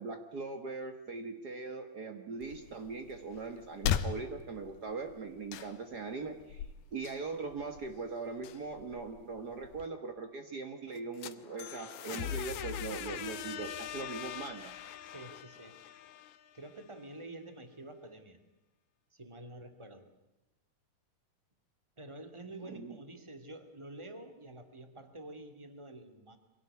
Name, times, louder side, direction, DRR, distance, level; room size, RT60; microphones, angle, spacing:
voice 1, 0.0-6.7 6.9-14.7 22.7-23.0, right 4 dB, 80° right, 6 dB, 0.9 m, -40 dB
sound 1, 2.4-9.9, left 9 dB, 85° left, 2.9 m, -40 dB
sound 2, 11.0-16.8, left 9 dB, 65° left, 2.1 m, -42 dB
voice 2, 15.0-15.8 16.5-18.4 19.1-20.1 22.0-26.4, right 2 dB, 10° right, 8 dB, 1.6 m, -48 dB
24.5 x 17.5 x 9.8 m, 0.97 s
omnidirectional pair, 4.3 m